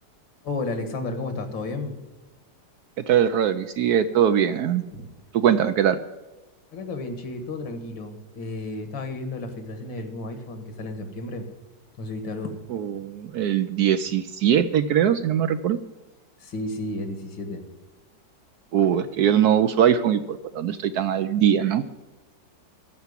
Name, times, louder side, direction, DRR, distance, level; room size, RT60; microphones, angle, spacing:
voice 1, 0.4-2.0 4.9-5.1 6.7-11.5 12.0-12.6 16.4-17.6 19.0-19.2, left 2 dB, 80° left, 7 dB, 2.4 m, -32 dB
voice 2, 3.1-4.8 5.3-6.0 12.7-15.8 18.7-21.8, right 9 dB, 70° right, 11 dB, 1.0 m, -21 dB
14.0 x 5.9 x 9.6 m, 1.2 s
omnidirectional pair, 2.0 m